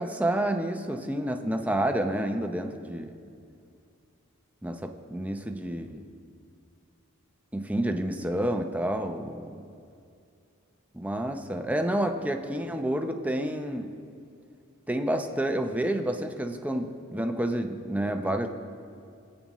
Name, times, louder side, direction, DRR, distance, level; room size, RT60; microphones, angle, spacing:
voice 1, 0.0-3.1 4.6-6.0 7.5-9.6 10.9-14.0 14.9-18.5, right 1 dB, 5° right, 5 dB, 0.6 m, -29 dB
26.0 x 8.8 x 3.1 m, 2.4 s
head